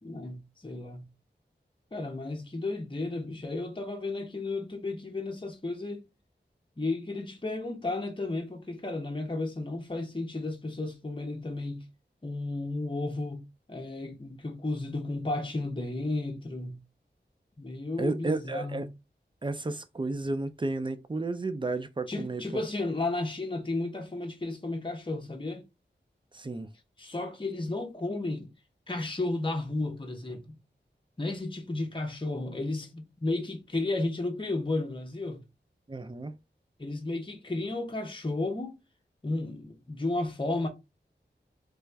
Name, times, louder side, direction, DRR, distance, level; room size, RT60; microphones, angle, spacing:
voice 1, 0.0-1.1 1.9-6.1 6.8-11.9 12.2-16.8 17.6-18.9 22.1-25.6 27.0-28.5 28.9-30.6 31.2-35.4 36.8-38.8 39.2-40.7, left 2 dB, 25° left, 0.8 m, -33 dB
voice 2, 18.0-18.9 19.4-22.6 26.3-26.7 35.9-36.3, right 2 dB, 25° right, 0.5 m, -32 dB
3.4 x 2.5 x 3.3 m
wide cardioid pair, 60°, 19 cm